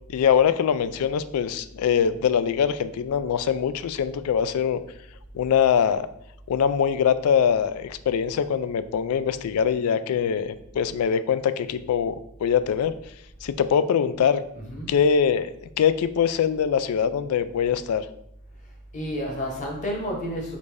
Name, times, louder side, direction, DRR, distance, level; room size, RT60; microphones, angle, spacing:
voice 1, 0.1-4.8 5.3-6.1 6.5-12.2 12.4-12.9 13.4-14.4 14.9-15.5 15.8-18.1, left 7 dB, 75° left, 14 dB, 0.3 m, -23 dB
voice 2, 14.5-15.0 18.6-20.6, equal, 35° left, 1 dB, 1.0 m, -31 dB
5.1 x 2.6 x 3.3 m, 0.78 s
head